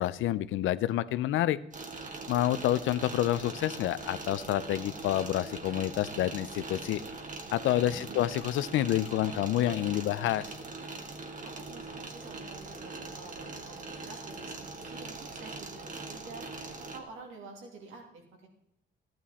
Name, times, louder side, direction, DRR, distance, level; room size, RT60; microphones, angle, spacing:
voice 1, 0.0-1.6 2.3-7.0 7.5-10.5, left 13 dB, 80° left, 16 dB, 0.6 m, -28 dB
sound 1, 1.7-17.0, right 3 dB, 40° right, 1.6 m, -42 dB
voice 2, 7.9-8.2 11.4-16.4 16.9-18.5, right 3 dB, 90° right, 1 dB, 2.7 m, -48 dB
13.5 x 9.4 x 4.2 m, 0.79 s
cardioid pair, 90°, 20 cm